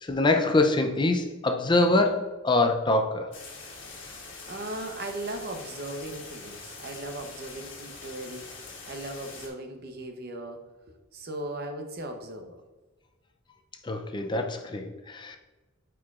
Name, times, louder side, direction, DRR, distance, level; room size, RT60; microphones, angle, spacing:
voice 1, 0.0-3.3 13.8-15.4, left 2 dB, 20° left, 4 dB, 0.4 m, -24 dB
sound 1, 3.3-9.5, left 3 dB, 65° left, 1.5 m, -44 dB
voice 2, 4.5-10.6 11.1-12.6, right 1 dB, 50° right, 4 dB, 0.8 m, -38 dB
8.6 x 4.6 x 2.4 m, 1.2 s
head